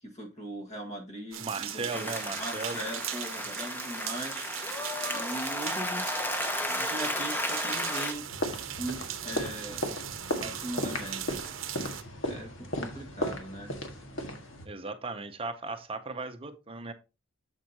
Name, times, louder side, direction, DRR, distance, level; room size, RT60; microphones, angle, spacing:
voice 1, 0.0-4.5 4.7-6.1 6.7-8.3 8.8-9.8 10.4-11.4 12.2-13.7, right 1 dB, 35° left, 2 dB, 1.7 m, -40 dB
sound 1, 1.3-12.0, right 11 dB, 80° right, 0.8 m, -39 dB
voice 2, 1.4-2.8 14.6-16.9, right 3 dB, 30° right, 8 dB, 0.7 m, -36 dB
Applause, 1.9-8.1, left 1 dB, 10° left, 0.9 m, -33 dB
sound 2, 8.1-14.7, equal, 70° left, 1.7 m, -36 dB
7.5 x 7.3 x 2.8 m, 0.28 s
head